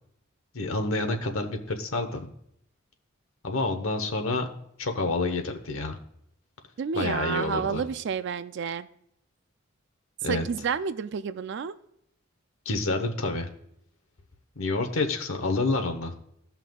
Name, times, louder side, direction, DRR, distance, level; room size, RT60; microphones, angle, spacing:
voice 1, 0.5-2.3 3.4-4.5 4.8-6.0 6.9-7.8 10.2-10.5 12.6-13.5 14.6-16.1, left 2 dB, 85° left, 6 dB, 1.0 m, -28 dB
voice 2, 6.8-8.9 10.3-11.7, right 6 dB, 60° right, 13 dB, 0.4 m, -30 dB
16.5 x 5.8 x 2.3 m, 0.73 s
head